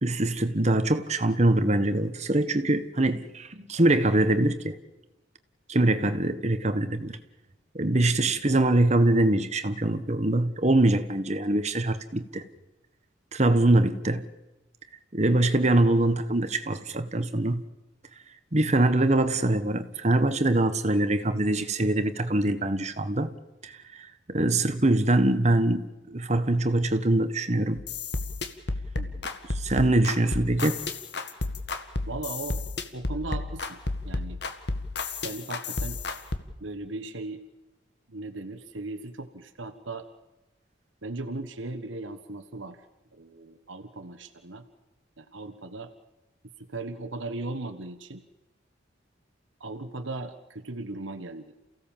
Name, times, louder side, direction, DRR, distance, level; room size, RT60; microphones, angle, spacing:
voice 1, 0.0-4.7 5.7-7.2 7.7-12.4 13.3-14.2 15.1-17.6 18.5-23.3 23.6-27.8 29.5-30.8, right 1 dB, 35° right, 1.4 m, -23 dB
sound 1, 27.8-36.4, left 3 dB, 60° left, 1.8 m, -32 dB
voice 2, 29.0-29.3 32.1-32.6 32.9-33.8 34.0-34.4 35.2-36.0 36.6-37.4 38.1-40.1 41.0-42.8 43.1-44.6 45.2-45.9 46.7-48.2 49.6-51.5, right 2 dB, 80° right, 1.4 m, -37 dB
28.5 x 16.5 x 7.3 m
head